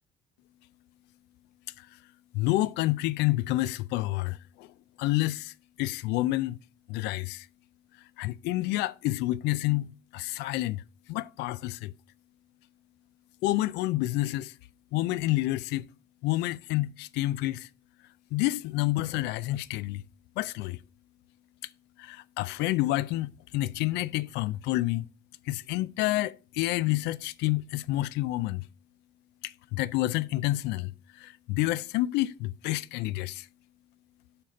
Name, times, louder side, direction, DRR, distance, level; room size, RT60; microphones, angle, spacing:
voice 1, 2.3-4.7 5.0-6.6 6.9-7.5 8.2-10.8 11.1-11.9 13.4-14.5 14.9-15.9 16.2-17.7 18.3-20.0 20.4-20.8 22.0-25.1 25.5-28.7 29.4-33.5, left 17 dB, 90° left, 0.4 m, -29 dB
6.7 x 4.2 x 5.1 m
cardioid pair, 110°, 17 cm